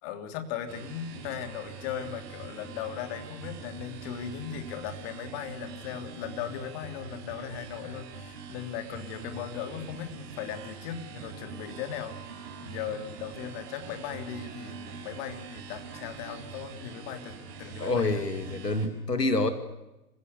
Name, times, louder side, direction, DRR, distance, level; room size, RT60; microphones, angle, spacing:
voice 1, 0.0-18.2, left 8 dB, 35° left, 7 dB, 3.2 m, -38 dB
sound 1, 0.7-18.9, right 5 dB, 40° right, 6.8 m, -44 dB
voice 2, 17.8-19.5, left 2 dB, 85° left, 10 dB, 2.5 m, -27 dB
27.5 x 16.5 x 8.3 m, 0.99 s
figure-of-eight pair, 115°, 47 cm